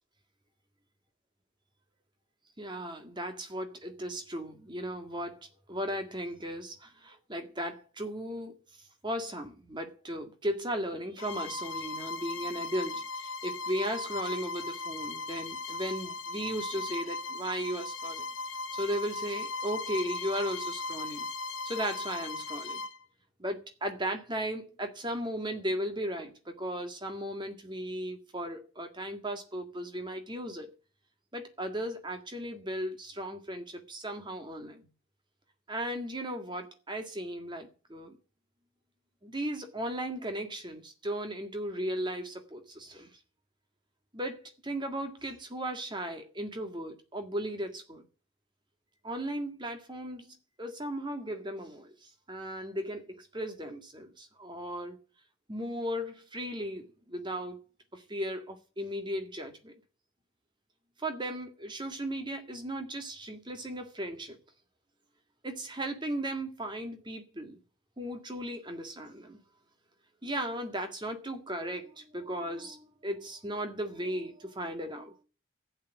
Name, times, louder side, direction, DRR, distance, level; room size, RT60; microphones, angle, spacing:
voice 1, 2.6-5.4 5.7-8.6 9.0-18.3 18.7-21.3 21.6-22.8 23.4-30.7 31.3-34.9 35.7-38.2 39.2-43.2 44.1-48.1 49.0-55.0 55.5-57.6 57.9-59.8 61.0-64.4 65.4-67.6 68.0-69.4 70.2-75.2, equal, 20° right, 1.8 m, -36 dB
Bowed string instrument, 11.2-23.0, left 3 dB, 75° left, 1.2 m, -38 dB
12.0 x 8.7 x 8.0 m
head